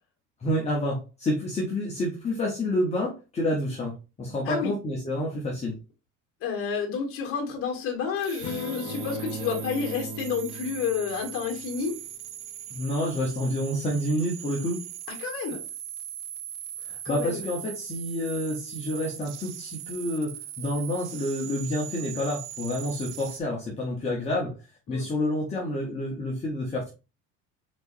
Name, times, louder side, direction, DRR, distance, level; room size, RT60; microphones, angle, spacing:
voice 1, 0.4-5.7 12.7-14.8 16.9-24.5 24.9-26.9, left 1 dB, 20° left, 1.0 m, -29 dB
voice 2, 4.4-4.8 6.4-12.0 15.2-15.6 17.0-17.4 24.9-25.0, left 6 dB, 40° left, 1.5 m, -30 dB
sound 1, 8.2-23.4, right 10 dB, 70° right, 0.7 m, -40 dB
Strum, 8.4-12.3, left 5 dB, 60° left, 1.1 m, -41 dB
Bowed string instrument, 8.8-11.9, right 4 dB, 20° right, 1.1 m, -40 dB
4.5 x 4.1 x 2.6 m
cardioid pair, 150°, 33 cm